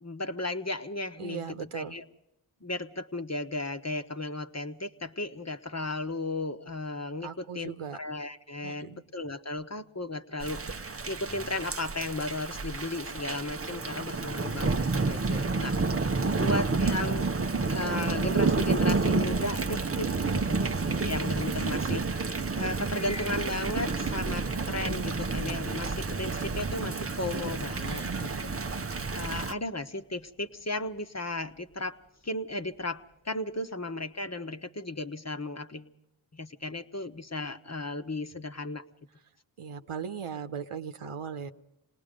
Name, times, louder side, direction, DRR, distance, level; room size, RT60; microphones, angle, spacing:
voice 1, 0.0-2.0 2.6-15.8 16.3-17.3 17.7-28.0 28.4-28.5 29.1-32.0 32.2-35.9 36.3-38.8, left 2 dB, 30° left, 8 dB, 1.2 m, -35 dB
voice 2, 1.2-2.0 7.2-8.0 8.6-9.0 16.2-16.5 20.2-20.5 27.8-28.6 39.6-41.5, right 7 dB, 85° right, 8 dB, 1.1 m, -39 dB
Thunder / Rain, 10.4-29.5, right 3 dB, 30° right, 0.7 m, -30 dB
sound 1, 22.6-32.8, left 2 dB, 10° left, 1.3 m, -49 dB
27.0 x 19.0 x 5.2 m, 0.86 s
cardioid pair, 45°, 49 cm